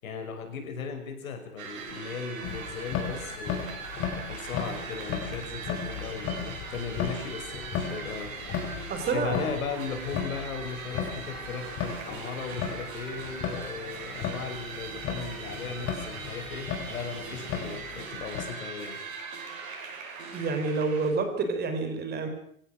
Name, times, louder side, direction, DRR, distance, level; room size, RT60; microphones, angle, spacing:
voice 1, 0.0-3.7 4.1-8.3 8.8-19.0, left 5 dB, 70° left, 6 dB, 5.8 m, -37 dB
sound 1, 1.6-21.1, right 4 dB, 65° right, 7.5 m, -40 dB
sound 2, 2.4-18.5, left 7 dB, 30° left, 6.0 m, -36 dB
voice 2, 8.9-9.5 20.3-22.3, right 4 dB, 20° right, 7 dB, 3.8 m, -28 dB
25.0 x 16.5 x 6.2 m, 0.64 s
hypercardioid pair, 125°, 43 cm